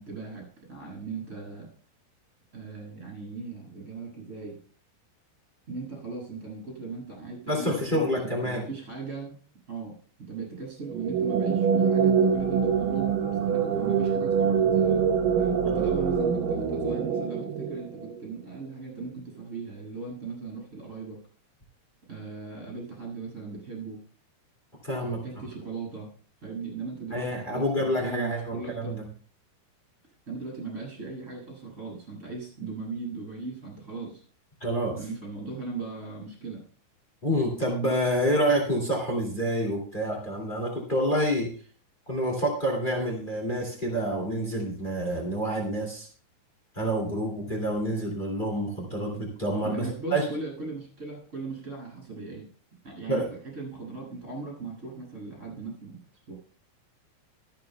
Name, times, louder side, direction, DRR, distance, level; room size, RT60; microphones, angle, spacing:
voice 1, 0.0-1.7 2.5-4.6 5.7-9.4 9.7-9.9 10.3-21.2 22.1-24.0 25.0-26.1 26.4-29.0 30.3-34.2 35.0-36.6 49.6-52.4 52.8-53.3 53.5-56.0 56.3-56.4, right 4 dB, 15° right, 0 dB, 7.0 m, -38 dB
voice 2, 7.5-8.6 15.6-15.7 24.8-25.2 27.1-29.0 34.6-35.0 37.2-41.5 42.0-46.1 46.7-50.2 53.1-53.3, equal, 80° left, -1 dB, 0.4 m, -28 dB
sound 1, 10.8-18.3, right 7 dB, 90° right, 1.9 m, -25 dB
23.5 x 8.9 x 2.3 m, 0.43 s
omnidirectional pair, 5.6 m